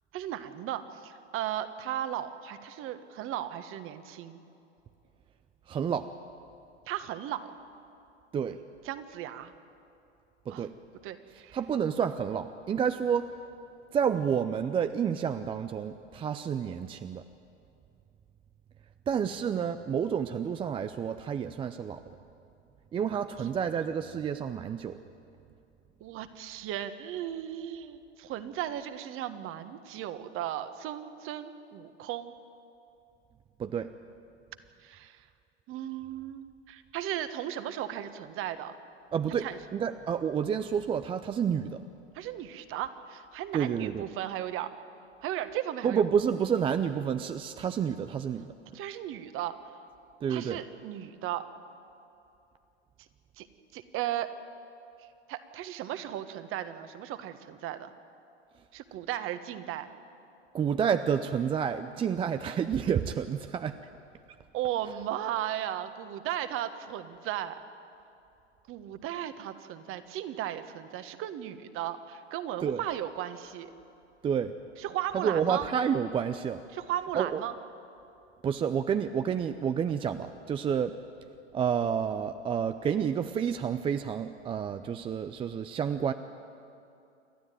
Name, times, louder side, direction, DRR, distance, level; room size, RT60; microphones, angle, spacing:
voice 1, 0.1-4.4 6.9-7.5 8.8-9.5 10.5-10.7 11.0-11.6 23.0-23.5 26.0-32.3 34.8-35.3 35.7-38.8 39.4-39.6 42.1-44.7 45.2-46.0 48.7-49.7 50.3-51.5 53.4-53.5 53.7-54.3 55.0-57.9 58.7-59.9 64.5-67.6 68.7-73.7 74.8-75.7 76.7-77.5, right 12 dB, 40° right, 10 dB, 1.4 m, -36 dB
voice 2, 5.7-6.1 8.3-8.6 10.5-10.7 11.5-13.3 13.9-17.2 19.1-22.0 22.9-25.0 33.6-33.9 39.1-39.5 39.7-41.8 43.5-44.0 45.8-48.5 50.2-50.6 60.5-63.8 72.6-72.8 74.2-74.5 75.1-76.6 77.1-77.4 78.4-81.0 81.5-86.1, right 7 dB, 15° right, 10 dB, 0.5 m, -29 dB
28.5 x 12.0 x 9.2 m, 2.7 s
hypercardioid pair, 100°, 34 cm